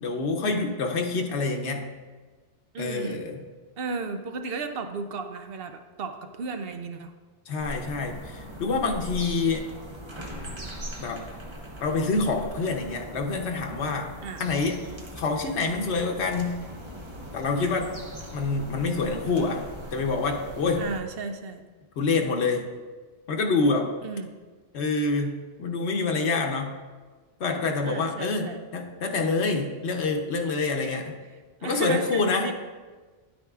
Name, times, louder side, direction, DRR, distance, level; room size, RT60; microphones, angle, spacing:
voice 1, 0.0-1.9 2.8-3.4 7.5-9.7 11.0-11.2 11.8-14.1 14.4-14.8 15.2-16.6 17.3-17.9 18.3-19.7 19.9-20.9 22.0-22.7 23.3-24.0 24.7-26.8 27.4-31.2 31.6-32.5, left 3 dB, 85° left, 2 dB, 1.1 m, -26 dB
voice 2, 2.7-3.2 3.8-7.1 14.2-14.5 20.8-21.6 24.0-24.3 27.8-28.6 30.9-31.0 31.6-32.5, right 4 dB, 65° right, 6 dB, 0.8 m, -34 dB
sound 1, 7.6-21.0, equal, 30° right, 0.9 m, -40 dB
9.7 x 8.7 x 2.4 m, 1.4 s
omnidirectional pair, 1.1 m